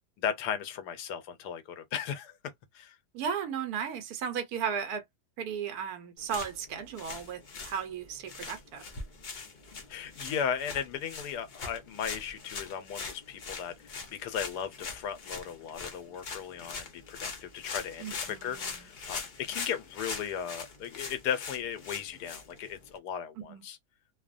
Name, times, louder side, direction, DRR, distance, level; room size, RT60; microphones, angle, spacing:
voice 1, 0.2-2.3 2.7-3.0 9.9-13.7 14.1-23.8, left 8 dB, 90° left, 1.2 m, -36 dB
voice 2, 3.1-5.0 5.4-8.8 18.0-18.9 23.4-23.6, right 7 dB, 75° right, 1.1 m, -35 dB
sound 1, 6.2-23.0, left 4 dB, 70° left, 0.4 m, -42 dB
2.8 x 2.1 x 2.5 m
omnidirectional pair, 1.7 m